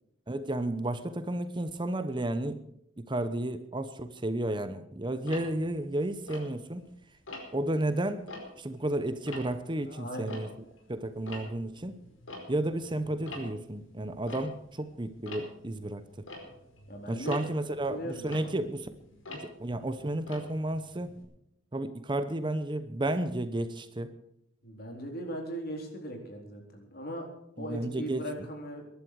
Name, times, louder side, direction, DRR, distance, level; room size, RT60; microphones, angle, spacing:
voice 1, 0.3-2.6 3.0-6.9 7.5-8.3 8.6-10.5 10.9-12.0 12.5-16.0 17.1-18.9 19.3-21.1 21.7-24.1 27.6-28.3, right 1 dB, 25° right, 11 dB, 0.8 m, -32 dB
Tick-tock, 5.3-6.9 7.3-7.7 8.1-10.9 11.1-21.2, left 2 dB, 80° left, 4.9 m, -46 dB
voice 2, 9.9-10.4 16.9-17.4 17.9-18.4 24.6-27.3 27.6-28.9, equal, 50° left, 3 dB, 4.1 m, -39 dB
22.0 x 11.5 x 4.8 m, 0.80 s
head